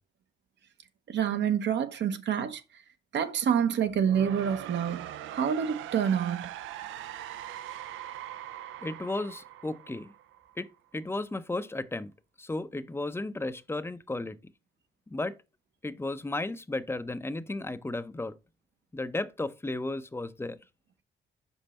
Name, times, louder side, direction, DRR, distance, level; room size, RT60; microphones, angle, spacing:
voice 1, 1.1-2.6 3.1-6.5, right 8 dB, 65° right, 0.9 m, -27 dB
sound 1, 3.8-10.7, right 11 dB, 80° right, 0.5 m, -42 dB
voice 2, 8.8-10.1 10.6-12.1 12.4-14.4 15.1-15.4 15.8-18.3 18.9-20.6, left 2 dB, 10° left, 0.5 m, -34 dB
5.4 x 4.9 x 4.2 m
cardioid pair, 90°, 20 cm